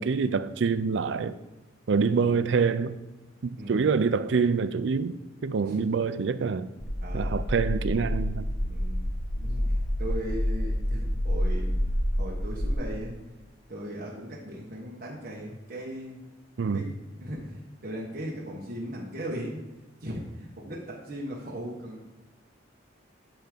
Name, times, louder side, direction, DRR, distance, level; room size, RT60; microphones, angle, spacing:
voice 1, 0.0-1.3 1.9-3.0 3.4-5.2 5.4-6.7 7.1-8.5 16.6-16.8, right 5 dB, 70° right, 0.4 m, -26 dB
voice 2, 3.6-4.0 5.6-5.9 7.0-7.4 8.7-13.2 13.7-16.3 16.7-19.7 20.0-22.1, equal, 45° right, 1.2 m, -38 dB
sound 1, 6.8-12.7, equal, 75° left, 1.3 m, -28 dB
9.7 x 3.5 x 6.7 m
head